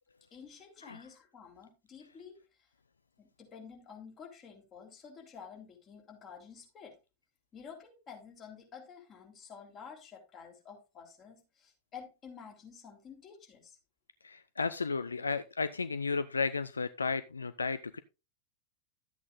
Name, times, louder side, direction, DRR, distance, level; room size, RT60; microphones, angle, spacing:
voice 1, 0.3-2.4 3.2-7.0 7.5-13.8, left 6 dB, 30° left, 3.6 m, -50 dB
voice 2, 14.2-18.0, left 4 dB, 75° left, 0.4 m, -33 dB
13.0 x 8.4 x 2.5 m
figure-of-eight pair, 90°, 0 cm